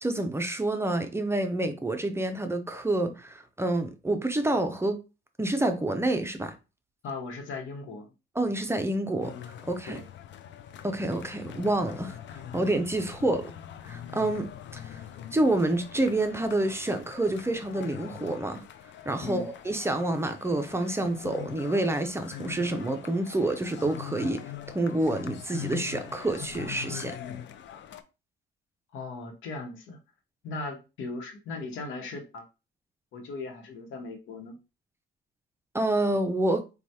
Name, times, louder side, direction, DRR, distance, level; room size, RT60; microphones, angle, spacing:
voice 1, 0.0-5.0 5.4-6.5 8.4-9.4 9.7-10.0 10.8-12.2 12.5-13.5 13.9-15.0 15.3-18.6 19.1-27.2 35.7-36.6, right 2 dB, 15° right, 0.5 m, -28 dB
voice 2, 7.0-8.1 9.8-10.1 13.2-13.4 19.2-19.5 28.9-30.0 30.4-32.4 33.1-34.6, left 3 dB, 85° left, 1.0 m, -38 dB
sound 1, 9.2-28.0, left 10 dB, 65° left, 0.5 m, -43 dB
4.4 x 2.3 x 2.8 m
cardioid pair, 90°, 20 cm